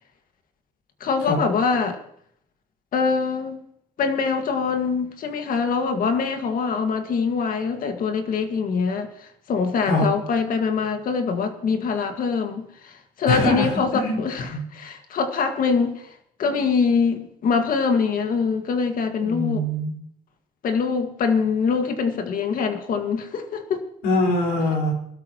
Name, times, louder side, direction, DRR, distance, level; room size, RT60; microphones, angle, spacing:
voice 1, 1.0-2.0 2.9-3.6 4.0-19.6 20.6-23.8, left 5 dB, 55° left, 6 dB, 1.9 m, -24 dB
voice 2, 13.3-14.2 14.5-14.6 19.2-19.9 24.0-24.9, left 1 dB, 90° left, -1 dB, 4.7 m, -23 dB
22.5 x 12.5 x 3.0 m, 0.69 s
cardioid pair, 110°, 17 cm